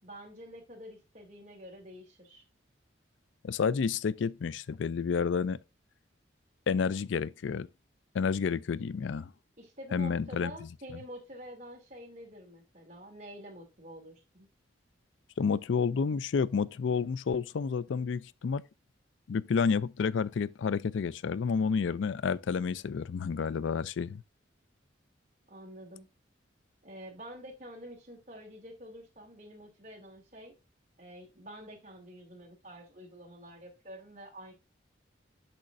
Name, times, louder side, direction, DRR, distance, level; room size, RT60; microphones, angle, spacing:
voice 1, 0.0-2.4 9.6-14.5 25.5-26.1 26.8-30.6 31.0-34.5, equal, 35° right, 2.7 m, -48 dB
voice 2, 3.4-5.6 6.7-7.7 8.1-9.3 9.9-10.5 15.4-18.6 19.3-24.2, left 5 dB, 75° left, 0.4 m, -30 dB
8.7 x 6.3 x 2.5 m
head